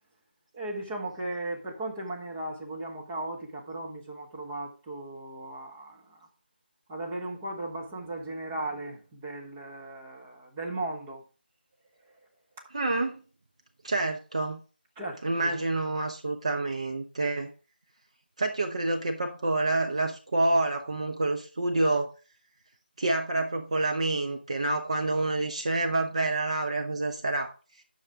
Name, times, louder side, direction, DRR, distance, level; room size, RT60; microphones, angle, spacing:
voice 1, 0.5-6.3 6.9-11.2 15.0-15.5, right 2 dB, 10° right, 1.2 m, -37 dB
voice 2, 12.7-13.2 13.8-14.6 15.2-17.5 18.4-22.1 23.0-27.8, right 2 dB, 35° right, 0.8 m, -28 dB
9.9 x 6.8 x 3.6 m
figure-of-eight pair, 165°, 6 cm